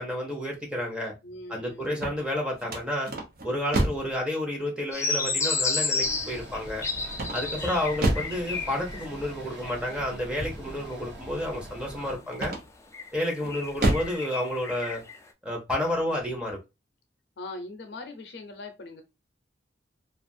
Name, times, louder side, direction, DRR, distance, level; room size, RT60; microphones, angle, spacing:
voice 1, 0.0-1.1 1.5-3.1 3.4-6.8 7.3-12.5 13.1-15.0 15.4-16.6, left 1 dB, 5° right, 0.7 m, -30 dB
voice 2, 1.2-2.0 7.3-7.8 12.1-12.7 16.1-16.3 17.4-19.0, left 2 dB, 65° left, 0.6 m, -42 dB
sound 1, 1.8-4.2 7.1-8.4 12.3-12.9 13.4-14.2, right 1 dB, 55° right, 0.7 m, -28 dB
sound 2, 4.9-9.2 9.5-10.0 10.9-11.0 12.9-15.2, left 4 dB, 15° left, 0.3 m, -31 dB
sound 3, 6.0-12.2, right 1 dB, 75° right, 1.3 m, -42 dB
2.4 x 2.4 x 2.6 m
head